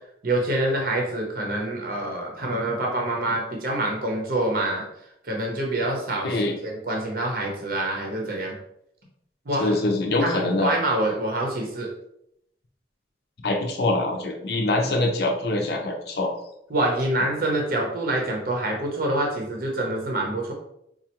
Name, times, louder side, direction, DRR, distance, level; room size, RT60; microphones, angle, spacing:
voice 1, 0.2-4.9 5.2-8.5 9.5-9.7 10.2-11.9 16.7-20.5, right 1 dB, 55° right, 0 dB, 0.7 m, -26 dB
voice 2, 6.2-6.5 9.6-10.7 13.4-16.3, left 2 dB, 60° left, 3 dB, 0.6 m, -24 dB
4.2 x 2.4 x 2.9 m, 0.75 s
head